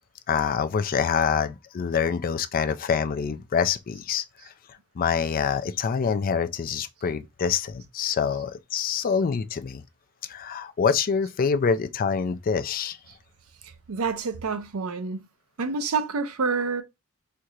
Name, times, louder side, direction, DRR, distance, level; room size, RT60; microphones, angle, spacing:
voice 1, 0.3-4.2 5.0-9.8 10.3-13.0, left 6 dB, 40° left, 0.4 m, -26 dB
voice 2, 13.9-15.3 15.6-16.8, right 4 dB, 70° right, 0.6 m, -27 dB
4.5 x 2.8 x 2.4 m
head